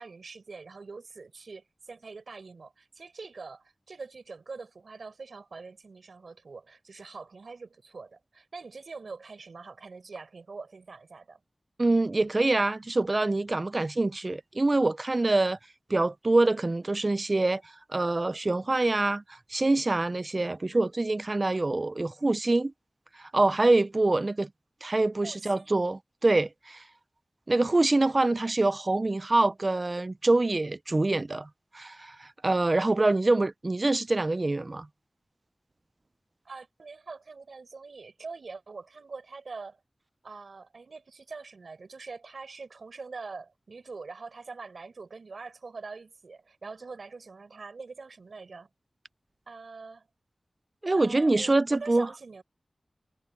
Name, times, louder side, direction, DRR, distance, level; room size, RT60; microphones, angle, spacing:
voice 1, 0.0-11.4 25.2-25.8 36.4-39.8 40.2-48.7 49.5-50.1 50.9-52.4, right 4 dB, 90° right, 5.6 m, -44 dB
voice 2, 11.8-15.6 15.9-17.6 17.9-22.7 23.2-24.5 24.8-26.8 27.5-31.5 31.7-34.9 50.8-52.1, right 2 dB, 45° right, 0.4 m, -25 dB
wide cardioid pair, 60°, 0 cm